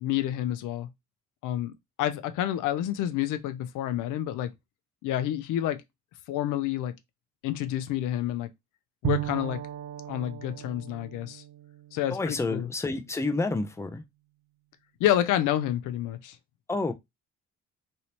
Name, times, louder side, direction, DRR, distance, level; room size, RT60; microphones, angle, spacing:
voice 1, 0.0-0.9 1.4-1.7 2.0-4.5 5.0-5.8 6.3-6.9 7.4-8.5 9.0-9.6 10.1-11.4 11.9-12.7 15.0-16.4, left 12 dB, 90° left, 0.6 m, -28 dB
Bowed string instrument, 9.0-12.8, right 11 dB, 65° right, 0.7 m, -36 dB
voice 2, 12.1-14.0 16.7-16.9, left 3 dB, 10° left, 0.5 m, -29 dB
3.2 x 2.8 x 2.9 m
cardioid pair, 90°, 30 cm